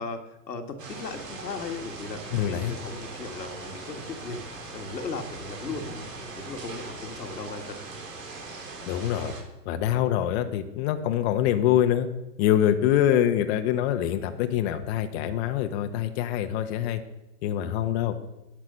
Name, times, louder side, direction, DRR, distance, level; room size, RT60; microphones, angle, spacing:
voice 1, 0.0-7.8, left 4 dB, 85° left, 5 dB, 1.6 m, -37 dB
sound 1, 0.8-9.4, right 3 dB, 75° right, 3.4 m, -40 dB
voice 2, 2.3-2.8 8.9-9.3 9.6-12.1 12.4-17.0 17.4-18.1, left 11 dB, 40° left, 7 dB, 0.9 m, -25 dB
11.0 x 7.5 x 5.5 m, 0.94 s
hypercardioid pair, 115°, 49 cm